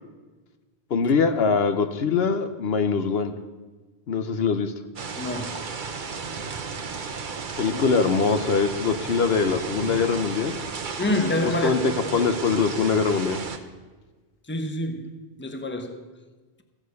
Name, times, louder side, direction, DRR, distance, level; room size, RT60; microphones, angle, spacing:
voice 1, 0.9-3.3 4.1-4.7 7.6-10.6 11.6-11.8 12.1-13.4, left 5 dB, 70° left, 1.0 m, -23 dB
sound 1, 5.0-13.6, right 5 dB, 50° right, 1.0 m, -34 dB
voice 2, 5.2-5.6 7.7-7.8 11.0-12.3 14.4-16.1, left 1 dB, 10° left, 0.9 m, -28 dB
15.5 x 7.5 x 6.5 m
omnidirectional pair, 1.1 m